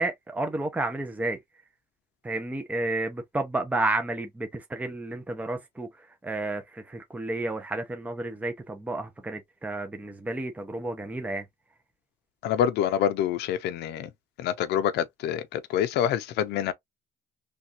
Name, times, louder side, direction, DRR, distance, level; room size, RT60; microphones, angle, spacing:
voice 1, 0.0-1.4 2.2-11.4, right 2 dB, 10° right, 0.7 m, -31 dB
voice 2, 12.4-14.1 14.4-16.7, left 10 dB, 80° left, 0.7 m, -26 dB
3.3 x 2.5 x 2.8 m
cardioid pair, 110°, 17 cm